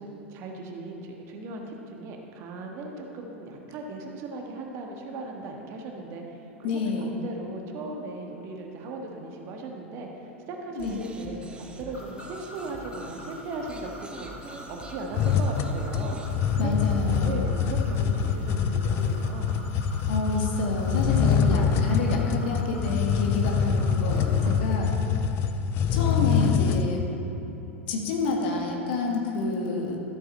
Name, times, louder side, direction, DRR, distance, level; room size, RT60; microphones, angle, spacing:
voice 1, 0.0-16.8 17.0-19.5 24.3-24.7, right 3 dB, 40° right, 1 dB, 1.4 m, -38 dB
voice 2, 6.6-7.1 10.8-11.0 16.6-17.4 20.1-24.9 25.9-27.1 27.9-30.0, left 3 dB, 55° left, 0 dB, 1.6 m, -28 dB
sound 1, 10.8-16.6, right 2 dB, 15° right, 1.0 m, -45 dB
sound 2, 11.9-24.5, left 1 dB, 85° left, 2.2 m, -46 dB
sound 3, 15.1-26.8, left 6 dB, 35° left, 0.6 m, -25 dB
13.5 x 8.3 x 4.3 m, 3.0 s
figure-of-eight pair, 85°, 7 cm